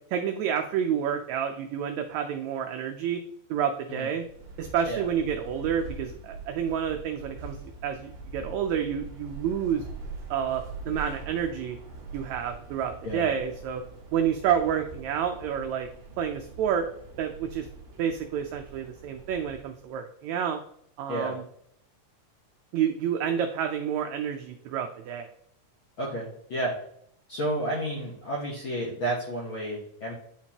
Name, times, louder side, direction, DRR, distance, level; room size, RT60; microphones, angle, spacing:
voice 1, 0.1-3.2 3.5-4.2 4.6-9.8 10.3-11.8 12.1-13.8 14.1-15.9 16.2-16.9 17.2-17.6 18.0-20.6 21.0-21.4 22.7-25.3, right 8 dB, 90° right, 5 dB, 1.6 m, -29 dB
sound 1, 4.2-19.9, right 3 dB, 60° right, 1.5 m, -43 dB
voice 2, 26.0-26.7 27.3-30.1, right 1 dB, 65° left, -3 dB, 1.2 m, -31 dB
9.1 x 4.4 x 2.9 m, 0.68 s
omnidirectional pair, 3.8 m